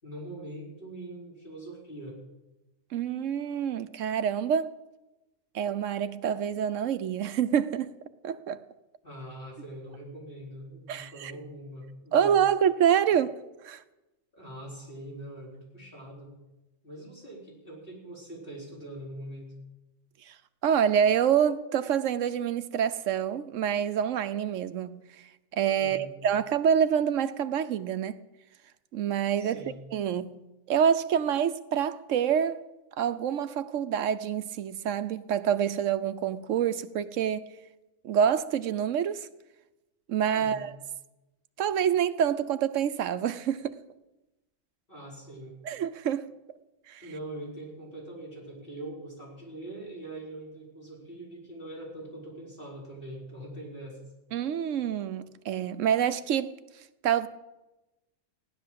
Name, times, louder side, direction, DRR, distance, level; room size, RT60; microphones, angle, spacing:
voice 1, 0.0-2.2 9.0-12.4 13.1-13.2 14.3-16.4 16.8-19.6 25.8-26.2 29.4-29.8 40.3-40.7 44.9-45.6 47.0-54.0, right 1 dB, 45° left, 4.9 m, -43 dB
voice 2, 2.9-4.7 5.5-7.9 8.2-8.6 10.9-11.3 12.1-13.3 13.6-13.8 20.3-20.4 20.6-25.0 25.5-28.2 28.9-29.6 29.9-30.4 30.7-32.6 33.0-37.5 38.0-39.3 40.1-40.7 41.6-43.8 45.7-46.3 46.9-47.0 54.3-56.5 57.0-57.3, right 8 dB, 75° right, 1.1 m, -27 dB
16.0 x 11.5 x 7.5 m
omnidirectional pair, 1.3 m